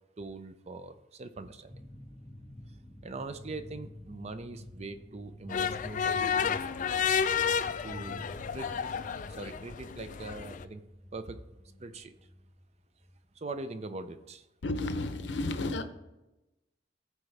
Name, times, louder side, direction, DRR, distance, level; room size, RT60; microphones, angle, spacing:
voice 1, 0.2-1.8 2.7-2.8 3.0-6.6 7.8-8.9 9.3-10.8 11.1-11.4 11.8-12.1 13.3-14.5, right 3 dB, 35° right, 11 dB, 0.5 m, -42 dB
sound 1, 1.7-13.7, left 1 dB, 15° left, 1.1 m, -50 dB
sound 2, 5.5-10.6, left 7 dB, 45° left, 0.3 m, -31 dB
voice 2, 14.6-15.8, left 2 dB, 75° left, 9 dB, 0.7 m, -32 dB
14.5 x 4.8 x 3.4 m, 0.99 s
head